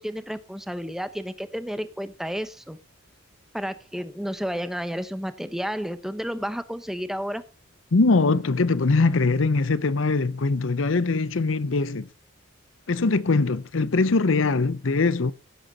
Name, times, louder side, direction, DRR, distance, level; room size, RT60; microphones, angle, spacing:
voice 1, 0.0-2.8 3.5-7.4, equal, ahead, 0.9 m, -31 dB
voice 2, 7.9-12.1 12.9-15.3, left 3 dB, 75° left, 0.7 m, -22 dB
16.5 x 8.0 x 4.2 m
head